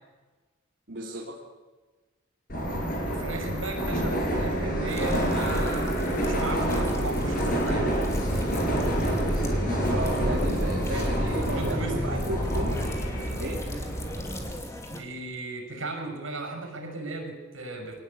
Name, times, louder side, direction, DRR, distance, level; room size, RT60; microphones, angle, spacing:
voice 1, 0.9-1.4 4.0-4.2 9.6-12.7 13.4-13.6, right 1 dB, 65° right, -3 dB, 2.9 m, -34 dB
Subway metro underground, 2.5-14.5, equal, 45° left, 6.4 m, -27 dB
voice 2, 3.1-7.9 10.9-12.3 14.9-18.0, right 2 dB, 90° right, 4 dB, 6.1 m, -36 dB
sound 1, 4.9-15.0, left 1 dB, 15° left, 2.5 m, -39 dB
23.5 x 18.5 x 8.6 m, 1.3 s
head